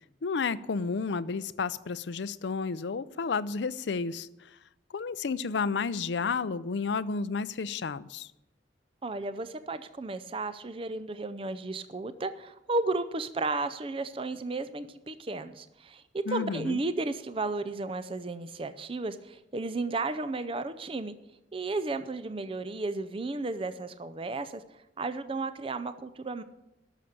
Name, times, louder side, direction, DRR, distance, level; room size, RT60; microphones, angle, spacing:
voice 1, 0.2-4.3 4.9-8.3 16.3-16.8, left 5 dB, 75° left, 17 dB, 0.5 m, -31 dB
voice 2, 9.0-21.2 21.5-24.6 25.0-26.4, right 3 dB, 30° right, 11 dB, 0.5 m, -33 dB
12.0 x 6.6 x 8.5 m, 0.92 s
head